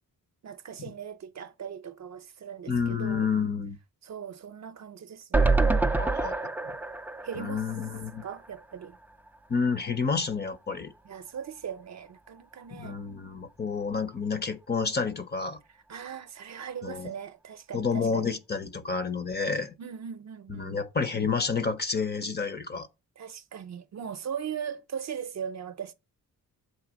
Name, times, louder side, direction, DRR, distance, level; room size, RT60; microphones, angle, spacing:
voice 1, 0.4-3.3 4.0-5.6 7.2-7.6 8.2-9.0 11.0-13.0 15.7-18.4 19.8-20.8 23.2-25.9, right 8 dB, 50° right, 0.6 m, -39 dB
voice 2, 2.7-3.8 6.0-6.5 7.4-8.2 9.5-10.9 12.7-15.6 16.8-17.1 17.7-19.7 20.6-22.9, left 5 dB, 30° left, 0.6 m, -29 dB
sound 1, 5.3-8.6 8.9-9.0 9.3-9.4, right 3 dB, 5° right, 0.3 m, -26 dB
7.7 x 3.3 x 6.1 m
wide cardioid pair, 165°, 35 cm